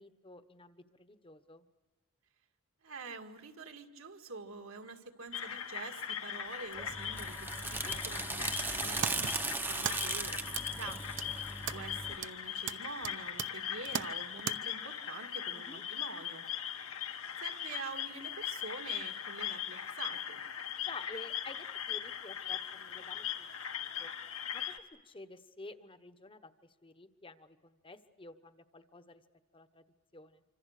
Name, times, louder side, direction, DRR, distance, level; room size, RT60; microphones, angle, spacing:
voice 1, 0.0-1.7 7.8-7.9 15.5-15.8 20.8-24.1 24.5-29.2 29.5-29.8 30.1-30.4, left 2 dB, 25° left, 10 dB, 1.1 m, -51 dB
voice 2, 2.8-11.0 11.4-16.5 17.4-20.4, right 4 dB, 70° right, 5 dB, 2.1 m, -46 dB
sound 1, 5.3-24.8, left 9 dB, 75° left, 1.6 m, -40 dB
sound 2, 6.7-12.2, right 3 dB, 10° right, 0.8 m, -38 dB
sound 3, 9.0-14.6, right 8 dB, 55° right, 0.8 m, -41 dB
26.0 x 26.0 x 6.6 m, 1.2 s
head